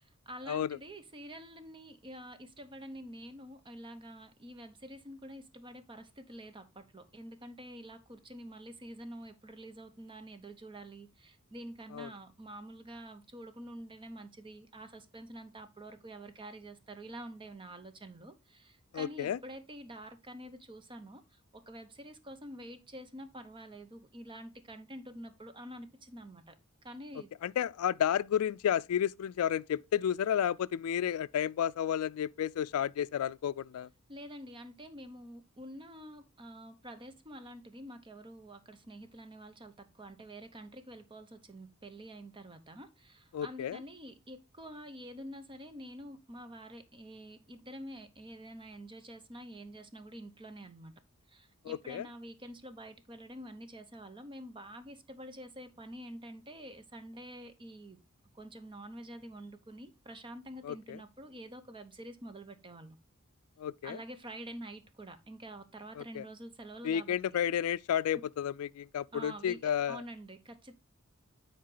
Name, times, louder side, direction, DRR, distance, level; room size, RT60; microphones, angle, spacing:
voice 1, 0.0-26.5 26.8-27.3 34.1-50.9 51.3-58.0 58.3-63.0 63.8-67.2 69.1-70.7, right 1 dB, 25° right, 0.8 m, -47 dB
voice 2, 18.9-19.4 27.4-33.9 43.3-43.8 51.6-52.1 60.6-61.0 63.6-64.0 66.0-66.2 66.8-70.0, left 9 dB, 85° left, 0.3 m, -32 dB
9.5 x 4.1 x 3.9 m
head